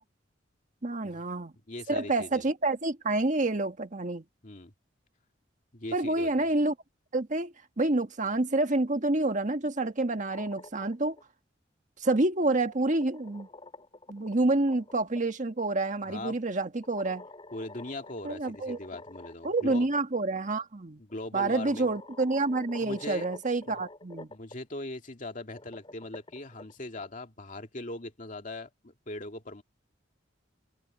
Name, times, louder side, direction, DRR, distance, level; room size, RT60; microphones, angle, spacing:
voice 1, 0.8-1.5 1.9-4.2 5.9-6.7 7.1-11.1 12.0-13.5 14.1-17.2 18.2-18.8 19.4-21.0 21.3-24.3, right 2 dB, 45° right, 1.5 m, -28 dB
voice 2, 1.7-2.4 4.4-4.7 5.7-6.3 16.1-16.4 17.5-19.9 21.0-21.9 22.8-23.3 24.3-29.6, left 2 dB, 45° left, 2.3 m, -40 dB
sound 1, 10.1-11.2 12.4-15.2 16.8-19.6 19.9-20.0 21.1-21.2 21.6-24.5 25.4-27.1, left 2 dB, 30° left, 4.4 m, -48 dB
head